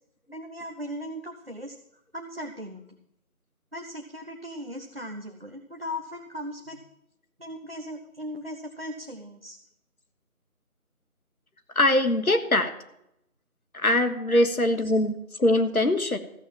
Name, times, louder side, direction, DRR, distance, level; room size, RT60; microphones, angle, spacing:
voice 1, 0.3-1.8 2.1-3.0 3.7-6.8 7.4-9.6 14.3-14.4, equal, 40° right, 4 dB, 0.9 m, -38 dB
voice 2, 11.7-12.7 13.7-16.2, left 1 dB, 70° left, 8 dB, 1.6 m, -22 dB
14.0 x 7.7 x 7.3 m, 0.81 s
figure-of-eight pair, 180°, 44 cm